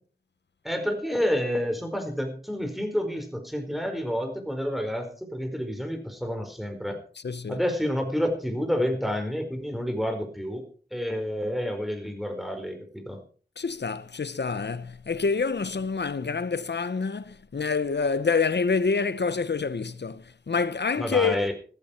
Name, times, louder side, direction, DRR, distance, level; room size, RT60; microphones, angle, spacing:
voice 1, 0.6-7.0 7.5-10.7 10.9-13.2 21.0-21.5, equal, ahead, 4.5 m, -29 dB
voice 2, 7.2-7.6 13.6-21.4, left 5 dB, 85° left, 0.9 m, -27 dB
15.5 x 14.0 x 4.4 m
wide cardioid pair, 65°, 17 cm